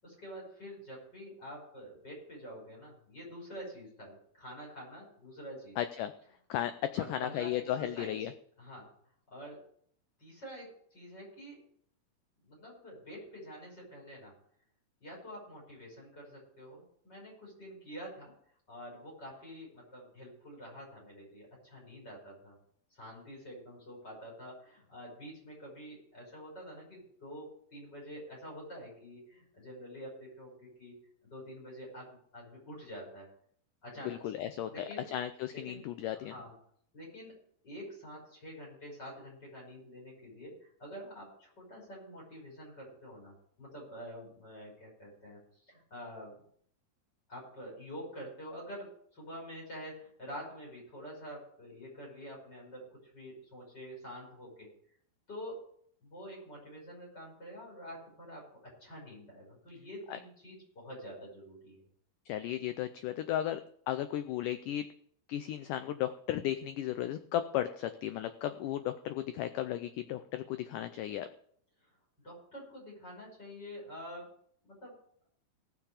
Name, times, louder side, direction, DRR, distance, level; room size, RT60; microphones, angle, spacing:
voice 1, 0.0-5.8 7.0-8.3 8.6-8.9 9.3-9.6 10.2-11.6 12.4-14.3 15.0-18.3 18.7-22.6 22.9-31.0 31.2-33.3 33.8-34.3 34.7-35.1 35.5-35.8 36.1-36.5 36.9-37.3 37.6-46.3 47.3-54.7 55.3-55.6 56.0-61.9 71.8-71.9 72.2-74.3 74.6-75.0, equal, 25° left, -3 dB, 6.3 m, -47 dB
voice 2, 5.8-6.1 6.5-8.3 34.0-36.3 60.1-60.2 62.3-64.9 65.3-71.3, left 12 dB, 85° left, 10 dB, 1.8 m, -35 dB
18.5 x 7.3 x 4.9 m, 0.63 s
omnidirectional pair, 4.5 m